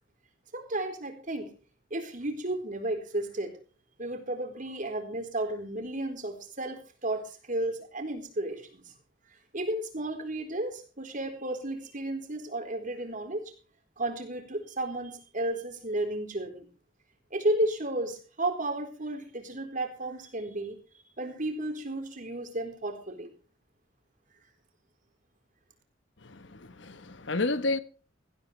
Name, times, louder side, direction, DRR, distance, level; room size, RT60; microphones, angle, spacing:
voice 1, 0.5-1.5 1.9-3.5 4.0-8.9 9.5-13.5 14.0-16.7 17.3-20.8 21.2-23.3, right 1 dB, 45° right, 4.2 m, -33 dB
voice 2, 26.2-27.8, left 2 dB, 65° left, 1.2 m, -31 dB
17.5 x 16.0 x 3.3 m
head